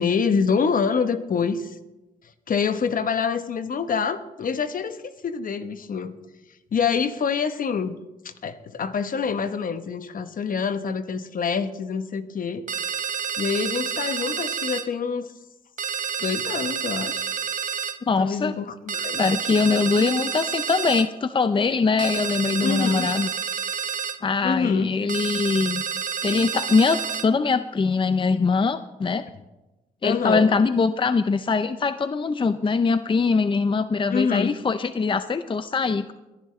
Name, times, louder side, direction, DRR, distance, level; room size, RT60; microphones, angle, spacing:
voice 1, 0.0-1.8 2.5-6.1 6.7-8.0 8.2-12.6 13.4-15.3 16.2-17.3 18.2-19.2 22.6-23.1 24.4-24.9 30.0-30.5 34.1-34.5, left 6 dB, 55° left, 10 dB, 1.0 m, -26 dB
sound 1, 12.7-14.9 15.8-18.0 18.9-21.1 22.0-24.2 25.1-27.3, right 7 dB, 50° right, 0.9 m, -29 dB
voice 2, 18.1-18.6 19.2-23.3 24.2-25.8 26.2-29.2 30.0-36.1, left 4 dB, 30° left, 11 dB, 0.6 m, -22 dB
21.5 x 11.0 x 3.3 m, 1.0 s
supercardioid pair, 60°, 17 cm